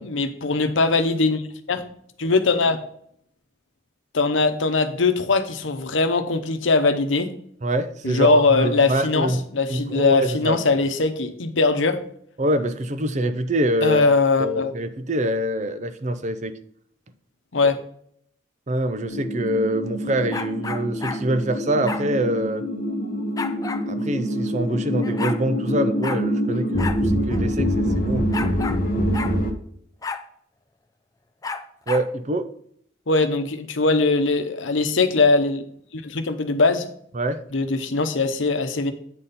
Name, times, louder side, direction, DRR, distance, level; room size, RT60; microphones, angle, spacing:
voice 1, 0.0-1.4 1.7-1.8 2.2-2.8 4.1-7.3 8.0-12.0 13.8-14.7 17.5-17.8 33.1-35.6 35.9-36.9 37.5-38.9, left 3 dB, 90° left, 0.9 m, -21 dB
voice 2, 7.6-9.4 9.7-10.8 12.4-14.0 14.4-16.6 18.7-22.6 23.9-28.2 31.9-32.5 37.1-37.4, right 1 dB, 40° right, 0.6 m, -25 dB
sound 1, 19.1-29.5, equal, 50° left, 1.0 m, -25 dB
sound 2, 20.3-21.2 21.9-22.1 23.4-23.8 24.7-24.8 25.0-25.4 26.0-26.2 26.8-27.0 27.3-27.4 28.3-28.8 29.1-29.3 30.0-30.2 31.4-32.1, left 4 dB, 20° left, 0.5 m, -31 dB
9.0 x 4.2 x 5.2 m
head